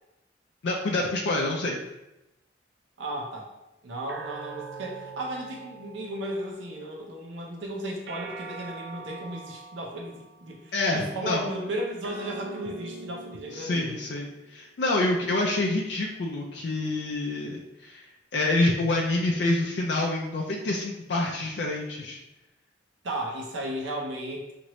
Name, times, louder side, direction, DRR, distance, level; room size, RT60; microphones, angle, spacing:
voice 1, 0.6-1.8 10.7-11.5 13.5-18.1 18.3-22.2, left 2 dB, 65° left, -1 dB, 0.4 m, -27 dB
voice 2, 3.0-3.5 3.8-14.0 23.0-24.5, right 1 dB, 80° right, -1 dB, 0.7 m, -35 dB
sound 1, 4.1-6.7 8.1-10.6 12.0-14.6, right 4 dB, 60° right, 0.3 m, -43 dB
2.9 x 2.5 x 3.0 m, 0.92 s
head